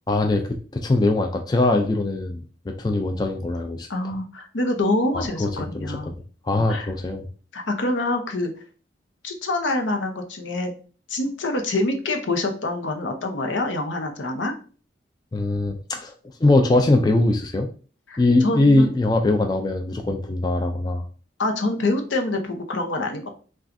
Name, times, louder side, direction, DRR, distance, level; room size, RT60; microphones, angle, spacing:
voice 1, 0.1-3.9 5.1-5.5 5.7-6.1 6.4-7.2 15.3-16.1 16.4-17.7 18.2-21.0, left 2 dB, 20° left, 4 dB, 0.3 m, -21 dB
voice 2, 3.9-6.1 6.6-6.9 7.5-8.5 9.2-10.7 11.1-14.5 18.1-18.9 21.4-23.3, left 2 dB, 80° left, 5 dB, 0.7 m, -26 dB
5.7 x 2.4 x 2.5 m, 0.39 s
head